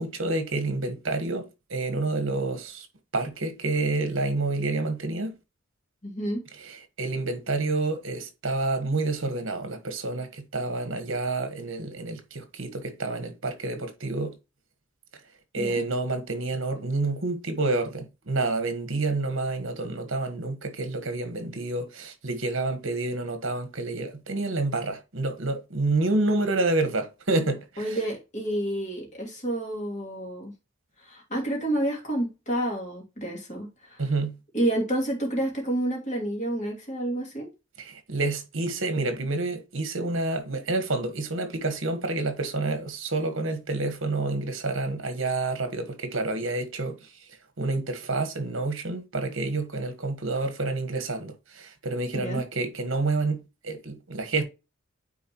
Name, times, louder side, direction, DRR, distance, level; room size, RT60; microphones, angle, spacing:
voice 1, 0.0-2.9 3.1-5.3 6.7-14.3 15.5-28.0 34.0-34.4 37.8-47.1 47.6-54.4, right 2 dB, 70° right, 1.4 m, -28 dB
voice 2, 6.0-6.4 15.5-15.8 27.8-30.5 31.0-34.0 34.5-37.5 52.1-52.4, right 1 dB, 35° left, 2.6 m, -29 dB
9.3 x 4.2 x 3.0 m
head